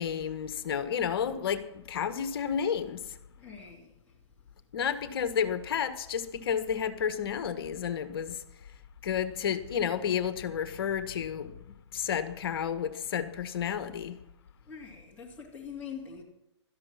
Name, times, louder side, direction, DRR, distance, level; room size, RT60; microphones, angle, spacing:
voice 1, 0.0-3.2 4.7-8.4 9.0-14.2, left 8 dB, 50° left, 1.6 m, -31 dB
voice 2, 3.4-3.9 14.7-16.2, left 6 dB, 10° left, 2.7 m, -43 dB
16.5 x 13.0 x 5.9 m
hypercardioid pair, 140°, 15 cm